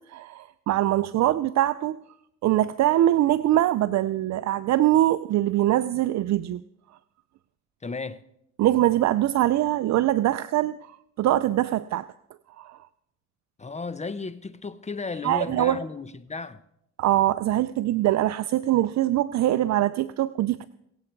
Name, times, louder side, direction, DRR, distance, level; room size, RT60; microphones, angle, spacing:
voice 1, 0.1-2.0 2.4-6.6 8.6-12.1 12.6-12.8 15.2-15.8 17.0-20.6, right 14 dB, 65° right, 0.5 m, -23 dB
voice 2, 7.8-8.2 13.6-16.6, left 4 dB, 25° left, 0.7 m, -34 dB
24.0 x 8.0 x 4.5 m
cardioid pair, 90°, 30 cm